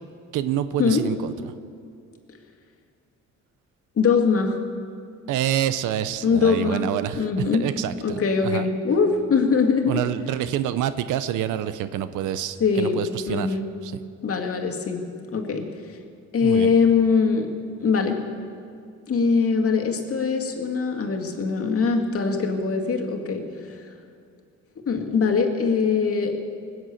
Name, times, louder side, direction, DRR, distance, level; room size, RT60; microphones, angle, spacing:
voice 1, 0.3-1.5 5.3-8.7 9.9-13.6 13.8-14.0 16.4-16.7, right 11 dB, 85° right, 13 dB, 0.6 m, -27 dB
voice 2, 4.0-4.6 6.2-6.9 7.1-7.6 8.0-10.0 12.6-13.0 13.3-13.7 14.2-15.0 15.3-15.7 16.3-17.5 17.8-18.2 19.1-23.4 24.9-26.4, left 5 dB, 50° left, 2 dB, 2.1 m, -22 dB
19.5 x 7.9 x 8.3 m, 2.4 s
cardioid pair, 90°, 30 cm